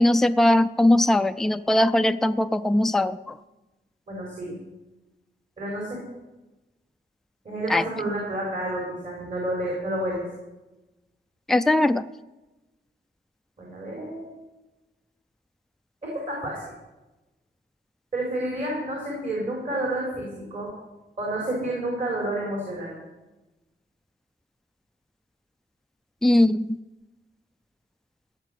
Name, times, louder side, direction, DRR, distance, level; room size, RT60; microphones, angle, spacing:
voice 1, 0.0-3.2 7.7-7.8 11.5-12.0 26.2-26.8, left 1 dB, ahead, 10 dB, 0.4 m, -20 dB
voice 2, 4.1-4.6 5.6-6.0 7.4-10.2 13.6-14.3 16.0-16.7 18.1-20.7 21.2-22.9, right 1 dB, 45° right, -3 dB, 4.3 m, -30 dB
16.0 x 6.7 x 9.1 m, 1.1 s
wide cardioid pair, 140°, 19 cm